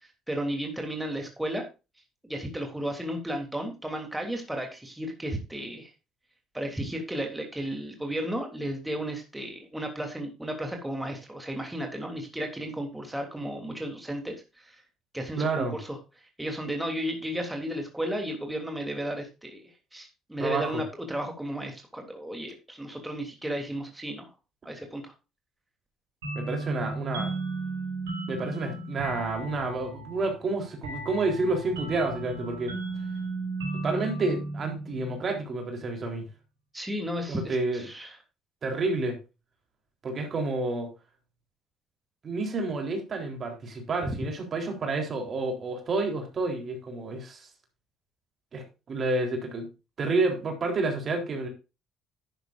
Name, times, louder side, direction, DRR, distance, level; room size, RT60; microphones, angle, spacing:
voice 1, 0.3-1.6 2.2-5.9 6.5-14.8 15.1-16.0 16.4-19.6 19.9-24.3 24.6-25.1 36.7-38.2 44.1-44.2, equal, 10° right, 3 dB, 3.1 m, -34 dB
voice 2, 15.4-15.8 20.4-20.8 26.3-27.3 28.3-32.8 33.7-36.3 37.3-37.8 38.6-39.2 40.0-40.9 42.2-47.5 48.5-49.7 50.0-51.5, right 3 dB, 45° right, 3 dB, 3.8 m, -29 dB
sound 1, 26.2-35.6, right 2 dB, 85° right, 4.4 m, -35 dB
11.0 x 10.5 x 2.6 m, 0.28 s
hypercardioid pair, 55°, 0 cm